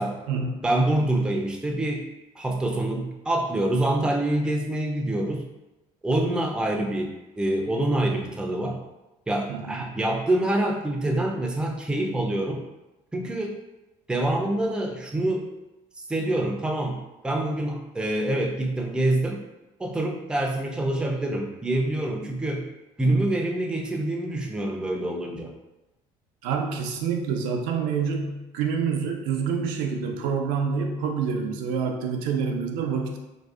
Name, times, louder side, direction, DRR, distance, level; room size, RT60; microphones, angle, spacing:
voice 1, 0.6-2.0 2.4-5.5 6.0-8.8 9.3-12.6 13.1-13.5 14.1-15.5 16.1-19.4 19.8-22.7 23.0-25.5, right 1 dB, 5° right, 1 dB, 0.3 m, -26 dB
voice 2, 9.5-9.8 26.4-33.2, right 6 dB, 85° right, 2 dB, 0.4 m, -27 dB
2.5 x 2.3 x 2.3 m, 1.0 s
cardioid pair, 100°, 14 cm